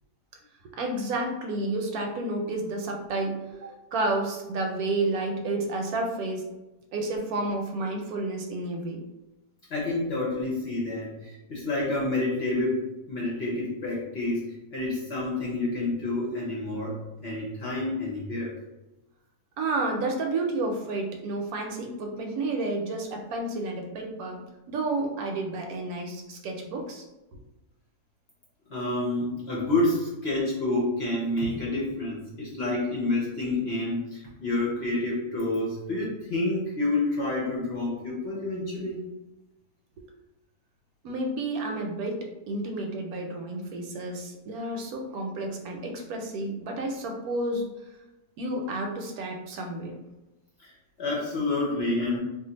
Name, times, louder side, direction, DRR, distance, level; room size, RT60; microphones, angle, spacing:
voice 1, 0.7-6.5 6.9-9.0 19.6-27.1 41.0-47.7 48.4-50.0, right 2 dB, 75° right, 2 dB, 1.0 m, -31 dB
voice 2, 9.7-14.5 14.7-17.0 17.2-18.5 28.7-39.0 50.6-52.2, left 2 dB, 55° left, -4 dB, 0.8 m, -28 dB
2.5 x 2.5 x 3.8 m, 0.99 s
omnidirectional pair, 1.7 m